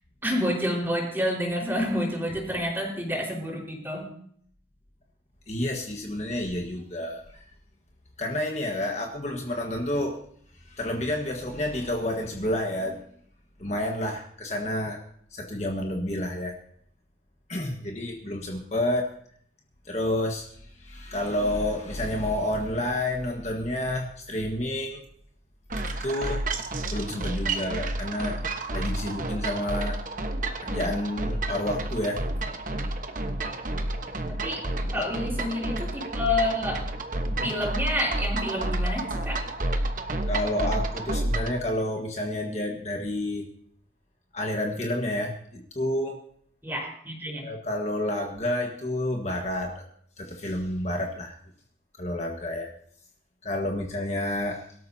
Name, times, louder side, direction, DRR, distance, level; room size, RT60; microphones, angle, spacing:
voice 1, 0.2-4.1 34.4-34.6 34.9-36.8 37.4-39.4 46.6-47.5, left 1 dB, 10° right, -2 dB, 4.6 m, -29 dB
voice 2, 5.5-7.4 8.2-10.2 10.6-13.0 13.6-15.0 15.3-16.6 17.5-19.1 19.8-20.5 20.7-25.0 26.0-26.4 26.9-28.4 28.7-30.0 30.6-32.2 34.9-35.1 37.3-37.5 40.3-43.5 44.3-46.2 47.4-49.8 50.2-51.3 52.0-52.7 53.4-54.6, left 1 dB, 35° left, 1 dB, 1.5 m, -29 dB
sound 1, 25.7-41.6, right 2 dB, 45° right, 1.2 m, -30 dB
23.5 x 13.0 x 2.8 m, 0.62 s
head